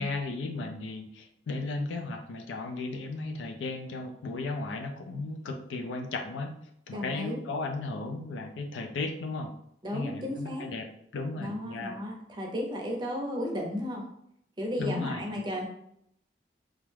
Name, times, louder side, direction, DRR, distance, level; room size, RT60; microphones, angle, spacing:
voice 1, 0.0-6.5 6.9-9.5 9.9-10.8 11.1-12.0 14.8-15.7, left 3 dB, 85° left, 3 dB, 0.4 m, -35 dB
voice 2, 6.9-7.4 9.8-10.7 11.4-14.0 14.6-15.7, left 1 dB, 25° right, 0 dB, 0.5 m, -34 dB
2.3 x 2.1 x 3.2 m, 0.72 s
head